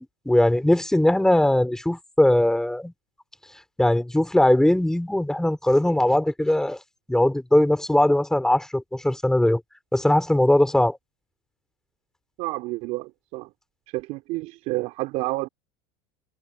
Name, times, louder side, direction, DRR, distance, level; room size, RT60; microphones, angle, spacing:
voice 1, 0.3-2.9 3.8-6.8 7.1-9.6 9.9-11.0, left 1 dB, 5° left, 4.1 m, -20 dB
voice 2, 12.4-13.5 13.9-15.5, right 21 dB, 60° right, 3.4 m, -29 dB
supercardioid pair, 105°, 13 cm